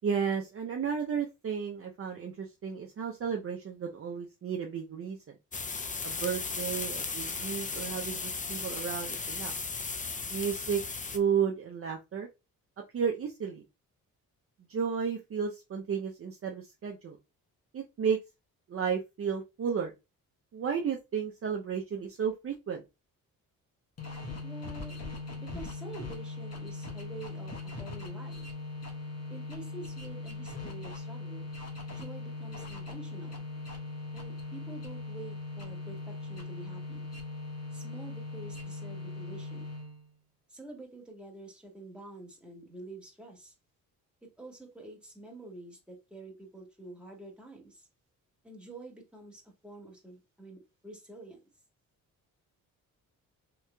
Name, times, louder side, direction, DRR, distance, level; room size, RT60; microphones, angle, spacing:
voice 1, 0.0-5.2 6.0-9.5 10.3-10.8 11.1-12.3 12.9-13.6 14.7-17.2 17.7-18.2 18.7-19.9 20.5-22.8, right 7 dB, 40° right, 1 dB, 0.6 m, -33 dB
sound 1, 5.5-11.2, left 4 dB, 20° left, 0.5 m, -36 dB
sound 2, 24.0-40.1, left 2 dB, 45° left, 1.2 m, -40 dB
voice 2, 24.4-25.0 25.4-28.4 29.3-31.5 31.9-33.5 34.1-37.1 37.7-39.7 40.5-43.5 44.2-47.9 48.4-51.4, right 2 dB, 5° right, 0 dB, 1.6 m, -48 dB
3.7 x 2.9 x 2.2 m, 0.25 s
cardioid pair, 70°, 36 cm